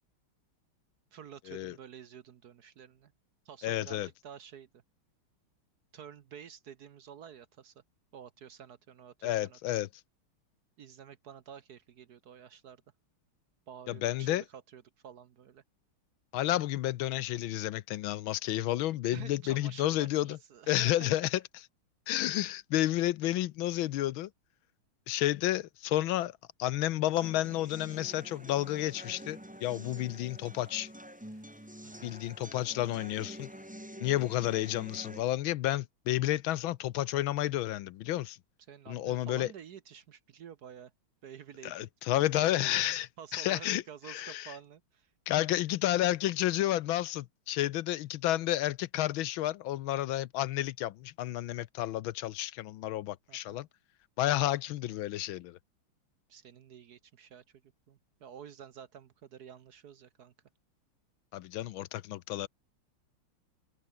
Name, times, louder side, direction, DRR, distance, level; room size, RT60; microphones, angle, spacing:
voice 1, 1.1-3.1 3.4-4.8 5.9-7.7 8.1-9.8 10.8-12.8 13.7-15.6 19.1-21.2 31.8-32.2 38.7-40.9 41.2-42.8 43.2-45.1 53.3-53.6 56.3-60.3, right 8 dB, 55° right, 1.2 m, -50 dB
voice 2, 3.6-4.1 9.2-9.9 13.9-14.4 16.3-20.4 20.7-21.4 22.1-24.3 25.1-26.3 26.6-30.9 32.0-33.5 34.0-38.4 38.9-39.5 41.6-43.1 43.3-44.5 45.3-53.7 54.2-55.6 61.3-62.5, left 14 dB, 75° left, 1.5 m, -31 dB
sound 1, 27.2-35.2, equal, 5° right, 2.9 m, -47 dB
Stream, 27.9-33.7, left 2 dB, 45° left, 7.4 m, -71 dB
open air
omnidirectional pair, 2.3 m